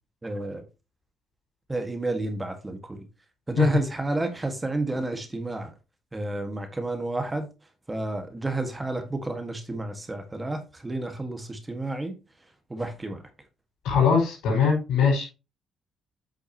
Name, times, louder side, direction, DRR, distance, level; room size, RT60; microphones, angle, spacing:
voice 1, 0.2-0.6 1.7-3.0 3.5-5.7 6.1-7.5 7.9-12.2 12.7-13.2, right 2 dB, 20° right, 1.8 m, -30 dB
voice 2, 13.8-15.2, left 6 dB, 85° left, 5.4 m, -21 dB
8.5 x 6.4 x 3.0 m
cardioid pair, 90°, 0 cm